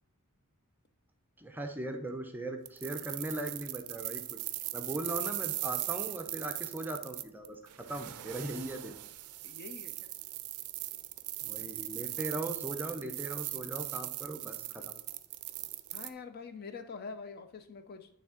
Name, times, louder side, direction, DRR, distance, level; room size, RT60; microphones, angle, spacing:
voice 1, 1.4-4.4 4.7-9.0 11.4-14.9, right 1 dB, 10° right, 4 dB, 0.5 m, -39 dB
sound 1, 2.7-16.1, right 16 dB, 80° right, 0.4 m, -39 dB
voice 2, 9.4-10.1 15.9-18.2, left 4 dB, 45° left, 8 dB, 0.5 m, -45 dB
8.8 x 3.3 x 3.7 m, 0.71 s
head